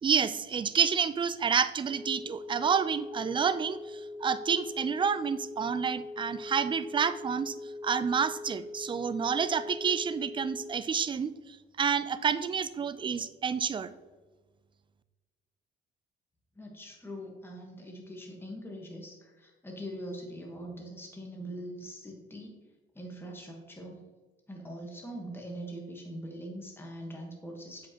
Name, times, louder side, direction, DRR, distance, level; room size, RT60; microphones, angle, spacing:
voice 1, 0.0-7.6 7.8-13.9, right 6 dB, 25° right, 13 dB, 0.3 m, -29 dB
sound 1, 1.8-10.7, left 2 dB, 90° right, 1.1 m, -42 dB
voice 2, 16.6-22.6 22.9-24.1 24.5-27.9, equal, 10° left, 0 dB, 1.2 m, -42 dB
7.5 x 5.1 x 2.9 m, 1.3 s
cardioid pair, 90°, 20 cm